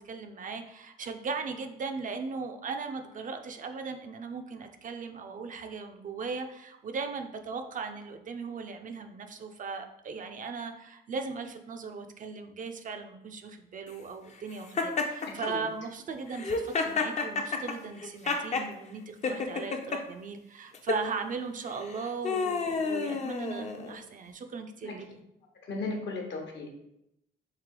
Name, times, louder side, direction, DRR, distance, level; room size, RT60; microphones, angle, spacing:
voice 1, 0.0-25.1, right 4 dB, 40° right, 6 dB, 0.4 m, -38 dB
Laughter, 14.8-15.5 16.3-18.7 19.2-20.0 20.7-21.0 21.8-24.0, left 4 dB, 35° left, 0.5 m, -30 dB
voice 2, 25.7-26.7, left 3 dB, 65° left, 1 dB, 1.0 m, -35 dB
3.2 x 2.8 x 3.7 m, 0.82 s
cardioid pair, 90°, 20 cm